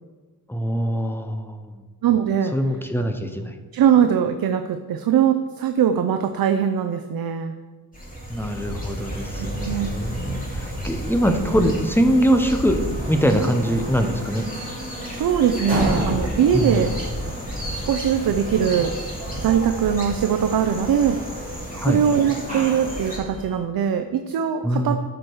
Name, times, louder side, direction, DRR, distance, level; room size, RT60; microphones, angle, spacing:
voice 1, 0.5-1.8 2.5-3.6 8.3-12.8 13.1-14.5 16.5-16.8 21.7-22.0 24.6-25.0, equal, 5° left, 6 dB, 0.6 m, -23 dB
voice 2, 2.0-2.5 3.7-7.5 9.3-10.0 10.3-10.4 15.1-16.9 17.9-18.9 19.4-21.2 21.9-25.0, right 8 dB, 65° right, 7 dB, 0.5 m, -21 dB
sound 1, 7.9-23.2, equal, 20° left, 2.6 m, -32 dB
sound 2, 12.6-23.6, right 1 dB, 20° right, 2.7 m, -33 dB
13.0 x 4.9 x 4.6 m, 1.4 s
wide cardioid pair, 160°, 38 cm